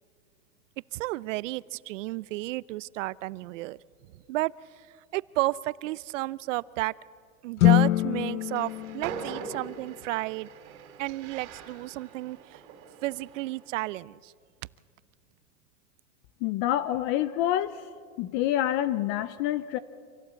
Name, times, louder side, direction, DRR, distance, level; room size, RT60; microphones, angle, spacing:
voice 1, 0.9-3.8 4.3-4.5 5.1-6.9 7.4-10.5 11.0-12.6 13.0-14.3, right 18 dB, 60° right, 21 dB, 0.6 m, -32 dB
sound 1, 7.6-10.0, left 15 dB, 75° left, 0.8 m, -25 dB
Train, 8.4-13.7, right 6 dB, 40° right, 3.4 m, -42 dB
voice 2, 16.4-17.9 18.2-19.8, left 13 dB, 30° left, 15 dB, 0.5 m, -27 dB
26.0 x 16.0 x 8.2 m, 2.2 s
supercardioid pair, 145°, 42 cm